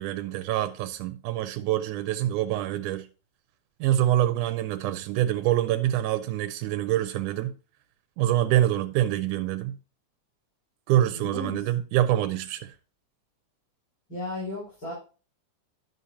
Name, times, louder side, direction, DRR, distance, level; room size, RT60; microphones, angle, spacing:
voice 1, 0.0-3.1 3.8-7.5 8.2-9.8 10.9-12.8, right 13 dB, 85° right, 2.1 m, -25 dB
voice 2, 11.1-11.6 14.1-14.9, left 2 dB, 30° left, 4.9 m, -34 dB
11.0 x 6.7 x 2.8 m
omnidirectional pair, 3.5 m